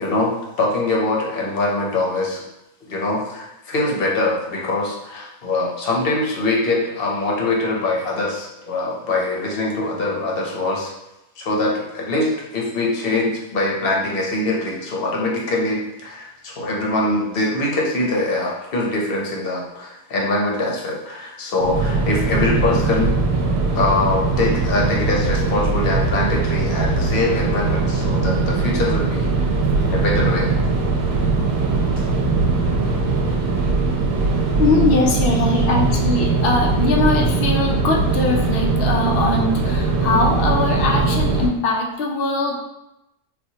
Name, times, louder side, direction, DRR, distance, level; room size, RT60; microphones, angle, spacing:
voice 1, 0.0-2.4 2.9-10.9 11.4-23.2 23.7-29.5 29.8-30.5 35.3-35.6, left 2 dB, 50° left, -2 dB, 0.7 m, -23 dB
sound 1, 21.6-41.5, right 3 dB, 75° right, 1.0 m, -20 dB
voice 2, 34.6-42.6, left 3 dB, 90° left, -1 dB, 0.5 m, -21 dB
4.1 x 2.2 x 2.7 m, 0.90 s
omnidirectional pair, 1.6 m